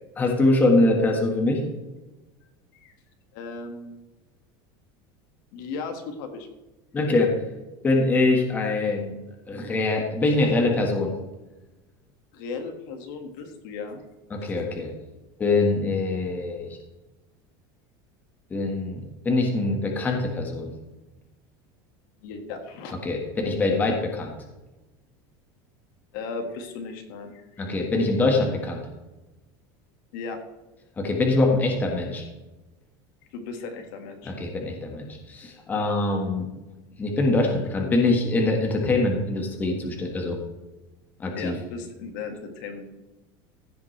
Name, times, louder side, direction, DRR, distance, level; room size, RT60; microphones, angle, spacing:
voice 1, 0.2-1.6 6.9-7.4 7.8-9.1 9.5-11.1 14.3-14.9 15.4-16.8 18.5-20.7 23.0-24.4 27.6-28.8 31.0-32.2 34.2-36.5 37.0-40.4 41.2-41.5, left 2 dB, 15° left, 1 dB, 1.6 m, -23 dB
voice 2, 3.3-3.9 5.5-6.5 12.3-14.0 14.4-14.5 22.2-22.9 26.1-27.4 30.1-30.4 33.3-34.3 41.4-42.9, left 4 dB, 65° left, 4 dB, 1.8 m, -36 dB
15.5 x 7.2 x 3.3 m, 1.1 s
cardioid pair, 170°, 11 cm